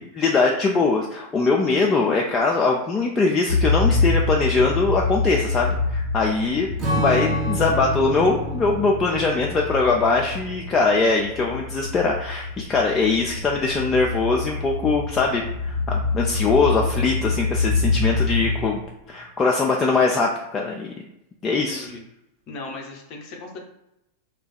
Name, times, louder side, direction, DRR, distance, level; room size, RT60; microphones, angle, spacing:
voice 1, 0.0-6.7 7.0-18.8 19.1-20.9 21.4-21.9, left 3 dB, 20° left, -1 dB, 0.3 m, -22 dB
sound 1, 3.5-19.1, left 3 dB, 90° right, 0.9 m, -26 dB
Strum, 6.8-11.5, equal, 25° right, 0.9 m, -29 dB
voice 2, 22.5-23.6, left 3 dB, 40° left, 1 dB, 0.7 m, -38 dB
2.3 x 2.3 x 3.9 m, 0.85 s
figure-of-eight pair, 90°, 0 cm